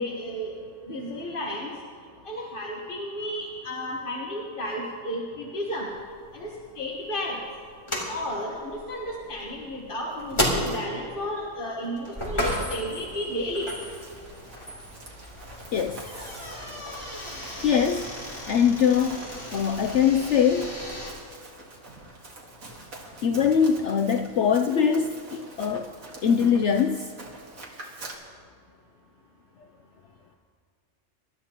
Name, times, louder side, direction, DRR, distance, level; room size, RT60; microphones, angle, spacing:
voice 1, 0.0-1.7 2.2-5.9 6.3-7.4 8.1-13.7, equal, 40° left, -2 dB, 1.4 m, -33 dB
sound 1, 5.9-21.1, equal, 20° left, 2.9 m, -34 dB
Run, 13.6-28.1, right 2 dB, 65° right, 2.3 m, -45 dB
voice 2, 15.7-16.6 17.6-18.1 18.5-19.2 19.5-20.8 23.2-25.9 26.2-27.1, left 7 dB, 65° left, 7 dB, 0.7 m, -23 dB
26.5 x 13.0 x 2.9 m, 2.2 s
omnidirectional pair, 1.6 m